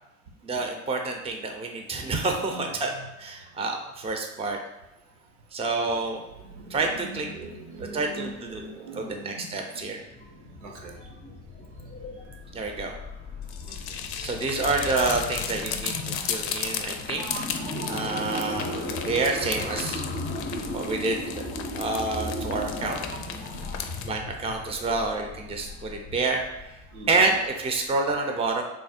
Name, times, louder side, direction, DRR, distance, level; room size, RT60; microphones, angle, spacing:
voice 1, 0.4-2.9 3.2-4.6 5.5-6.2 6.7-7.3 7.8-8.6 8.9-10.0 12.5-12.9 14.2-17.4 17.9-20.0 20.7-21.4 21.8-23.0 24.0-26.4 27.1-28.6, right 3 dB, 15° right, 3 dB, 0.6 m, -28 dB
voice 2, 6.4-10.0 10.4-11.2 11.6-11.8 13.6-13.8 15.8-16.3 17.2-19.0 23.1-24.1 26.9-27.3, right 2 dB, 80° right, 1 dB, 0.8 m, -42 dB
sound 1, 10.0-27.8, left 2 dB, 25° left, 0.6 m, -37 dB
sound 2, 13.4-24.1, left 8 dB, 65° left, 0.5 m, -35 dB
3.4 x 2.2 x 4.1 m, 0.98 s
hypercardioid pair, 75°, 36 cm